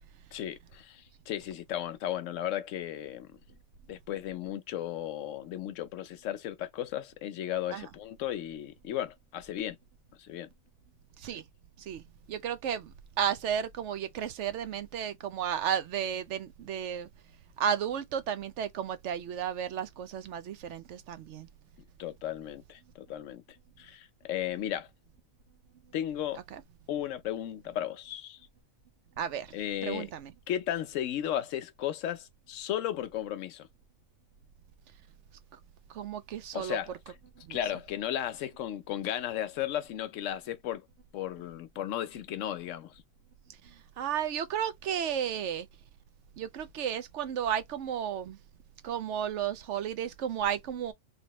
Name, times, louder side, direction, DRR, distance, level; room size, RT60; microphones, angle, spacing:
voice 1, 0.3-3.3 3.9-9.8 10.2-10.5 22.0-23.4 23.8-24.9 25.9-26.4 26.9-28.4 29.5-30.1 30.5-33.7 36.5-37.2 37.5-40.8 41.1-43.0, left 11 dB, 80° left, 1.0 m, -35 dB
voice 2, 12.3-12.9 13.2-17.1 17.6-21.5 29.2-29.5 29.8-30.3 35.9-36.8 37.5-37.6 44.0-45.7 46.4-48.4 48.8-50.9, right 9 dB, 70° right, 0.9 m, -33 dB
3.4 x 2.8 x 2.9 m
omnidirectional pair, 1.3 m